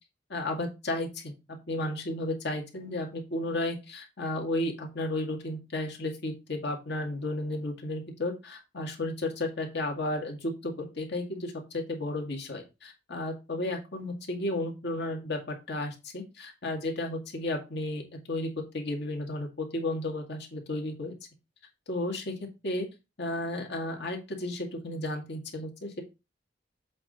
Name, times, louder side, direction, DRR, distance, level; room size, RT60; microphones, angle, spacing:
voice 1, 0.3-1.3 1.7-18.5 18.7-21.1 21.9-22.3 22.6-22.9 23.2-26.0, left 1 dB, 65° left, 1 dB, 2.1 m, -33 dB
7.7 x 3.9 x 4.2 m, 0.26 s
head